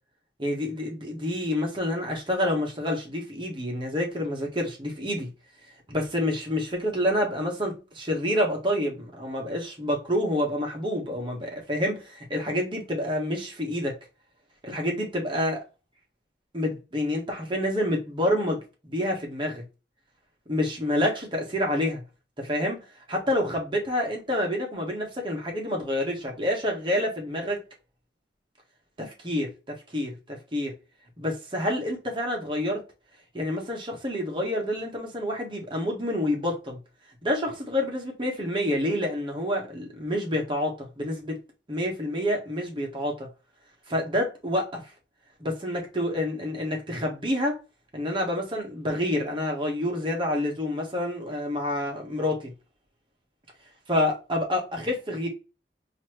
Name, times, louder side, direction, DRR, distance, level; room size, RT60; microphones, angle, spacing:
voice 1, 0.4-5.3 5.9-13.9 14.6-15.6 16.5-19.6 20.5-22.0 22.4-22.8 23.1-27.6 29.0-29.5 29.9-30.1 30.5-30.7 31.2-32.8 33.3-36.8 37.2-41.4 41.7-43.3 43.9-44.8 45.4-47.6 47.9-52.5 53.9-55.3, left 1 dB, 30° right, 1.4 m, -28 dB
4.2 x 2.9 x 3.0 m
head